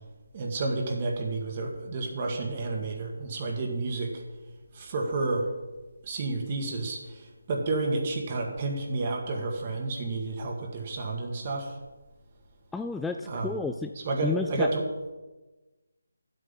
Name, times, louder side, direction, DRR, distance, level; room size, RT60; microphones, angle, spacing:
voice 1, 0.3-4.2 4.7-5.5 6.0-11.8 13.2-13.5 14.1-14.8, right 2 dB, 30° right, 2 dB, 1.8 m, -30 dB
voice 2, 12.7-13.9 14.2-14.7, left 4 dB, 5° left, 5 dB, 0.3 m, -31 dB
12.0 x 7.9 x 5.5 m, 1.2 s
figure-of-eight pair, 155°, 0 cm